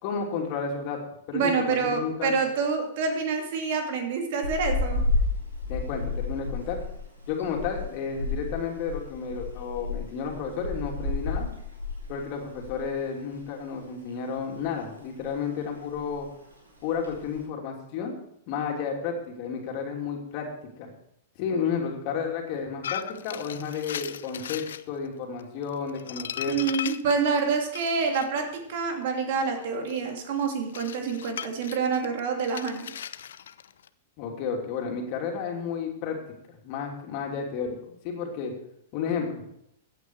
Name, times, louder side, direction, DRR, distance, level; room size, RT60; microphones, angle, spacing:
voice 1, 0.0-1.0 1.3-2.3 5.7-6.8 7.3-11.5 12.1-16.3 16.8-18.1 18.5-20.5 20.8-20.9 21.4-26.6 34.2-36.2 36.5-38.5 38.9-39.4, left 6 dB, 45° left, 1 dB, 3.0 m, -32 dB
voice 2, 1.3-5.0 26.4-32.9, right 5 dB, 55° right, 4 dB, 2.6 m, -27 dB
sound 1, 4.4-12.9 13.2-13.4 13.8-14.7 15.0-15.3 15.6-15.7 15.9-16.3 16.9-17.4, left 3 dB, 85° right, 4.5 m, -31 dB
sound 2, 22.8-24.8 25.4-28.3 29.0-33.9, left 9 dB, 70° left, 0.6 m, -37 dB
15.5 x 8.9 x 4.7 m, 0.77 s
figure-of-eight pair, 105°, 0 cm